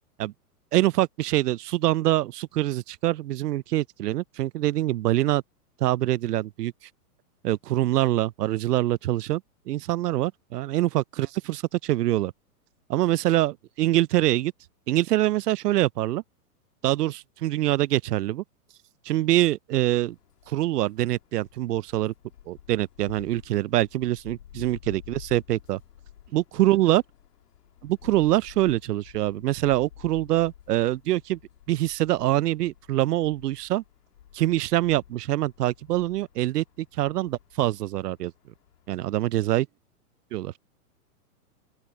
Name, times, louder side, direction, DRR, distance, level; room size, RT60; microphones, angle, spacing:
voice 1, 0.7-5.4 5.8-6.7 7.4-9.4 9.7-12.3 12.9-14.5 14.9-16.2 16.8-18.4 19.1-20.2 20.5-22.1 22.5-25.8 26.3-27.0 27.8-31.4 31.7-33.8 34.3-38.3 38.9-39.7 40.3-40.5, right 15 dB, 85° right, 0.7 m, -24 dB
sound 1, 20.1-39.2, left 11 dB, 85° left, 2.1 m, -51 dB
voice 2, 24.5-24.9 26.3-27.0 39.5-39.8, right 14 dB, 20° right, 3.0 m, -62 dB
open air
hypercardioid pair, 165°, 46 cm